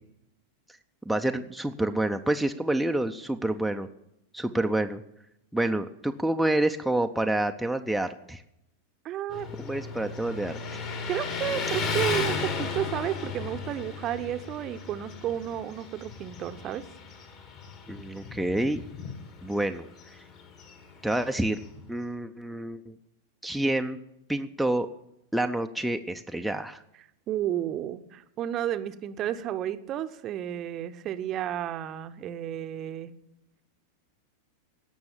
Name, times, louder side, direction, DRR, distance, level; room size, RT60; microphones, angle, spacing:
voice 1, 1.1-3.9 4.3-5.0 5.5-8.4 9.6-10.8 17.9-18.8 19.4-19.9 21.0-21.6 21.9-23.0 23.4-24.0 24.3-24.9 25.3-26.8, right 1 dB, ahead, 4 dB, 0.6 m, -28 dB
voice 2, 9.0-9.5 11.1-16.8 27.3-33.1, right 11 dB, 35° right, 11 dB, 0.8 m, -32 dB
Motorcycle, 9.3-21.9, left 4 dB, 40° left, 2.3 m, -35 dB
16.5 x 6.3 x 8.8 m, 0.83 s
figure-of-eight pair, 90°, 0 cm